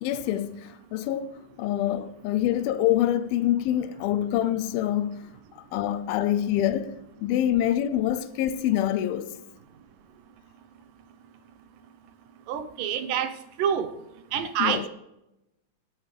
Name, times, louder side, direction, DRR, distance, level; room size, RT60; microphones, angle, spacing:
voice 1, 0.0-9.4 14.6-14.9, left 12 dB, 85° left, 2.4 m, -26 dB
voice 2, 12.5-13.3 13.6-13.9 14.3-14.9, right 8 dB, 75° right, 2.4 m, -26 dB
18.0 x 11.0 x 3.3 m
omnidirectional pair, 4.2 m